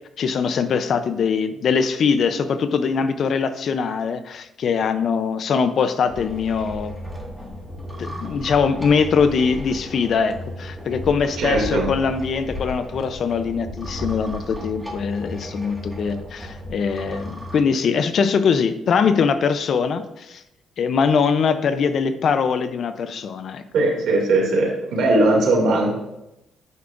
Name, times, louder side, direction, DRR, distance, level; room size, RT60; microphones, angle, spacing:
voice 1, 0.2-6.9 7.4-7.5 8.0-20.4 20.8-23.6, left 6 dB, 55° left, 11 dB, 0.5 m, -22 dB
sound 1, 6.1-17.6, left 1 dB, 5° left, 1.8 m, -34 dB
voice 2, 11.4-11.9 23.7-25.9, right 2 dB, 75° right, -1 dB, 2.4 m, -19 dB
9.2 x 5.9 x 2.5 m, 0.88 s
cardioid pair, 95°, 0 cm